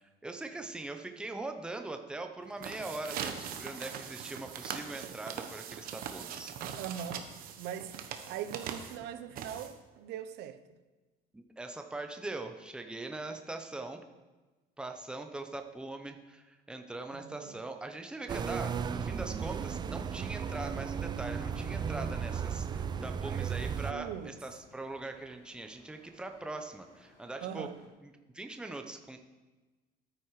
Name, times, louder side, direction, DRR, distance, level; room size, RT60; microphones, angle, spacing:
voice 1, 0.2-6.6 11.3-14.0 14.8-27.7 28.0-29.2, right 2 dB, 5° right, 0.8 m, -41 dB
sound 1, 2.4-10.0, right 8 dB, 55° right, 1.1 m, -41 dB
voice 2, 6.8-7.2 7.6-10.6 17.1-17.6 23.9-24.3 27.4-27.7, right 9 dB, 75° right, 0.8 m, -41 dB
sound 2, 18.3-23.9, right 7 dB, 25° right, 0.4 m, -35 dB
sound 3, 21.8-27.9, left 2 dB, 40° left, 3.0 m, -61 dB
12.5 x 9.6 x 4.8 m
cardioid pair, 160°, 17 cm